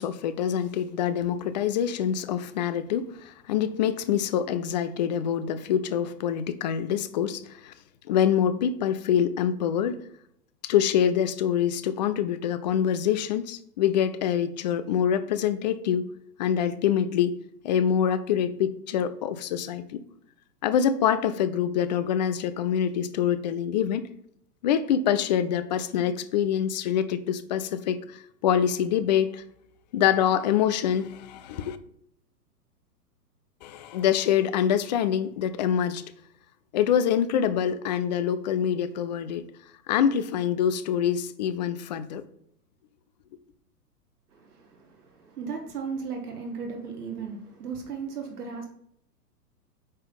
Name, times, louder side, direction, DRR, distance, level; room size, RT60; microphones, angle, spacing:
voice 1, 0.0-7.7 8.1-10.0 10.6-16.0 16.4-17.3 17.6-20.0 20.6-24.1 24.6-29.4 29.9-31.8 33.6-36.0 36.7-39.5 39.9-42.2, left 9 dB, 30° left, 12 dB, 0.4 m, -25 dB
voice 2, 44.3-48.7, right 5 dB, 70° right, 3 dB, 1.6 m, -36 dB
9.4 x 3.6 x 5.2 m, 0.71 s
figure-of-eight pair, 110°, 48 cm